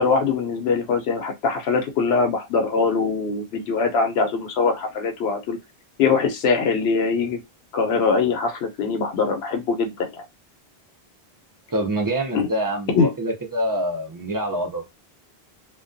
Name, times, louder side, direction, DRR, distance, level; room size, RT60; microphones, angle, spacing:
voice 1, 0.0-5.6 6.0-7.4 7.7-10.2 12.3-12.5 12.9-13.1, left 4 dB, 90° left, 0.9 m, -22 dB
voice 2, 11.7-14.8, right 1 dB, 30° right, 0.4 m, -26 dB
2.3 x 2.2 x 2.5 m
omnidirectional pair, 1.1 m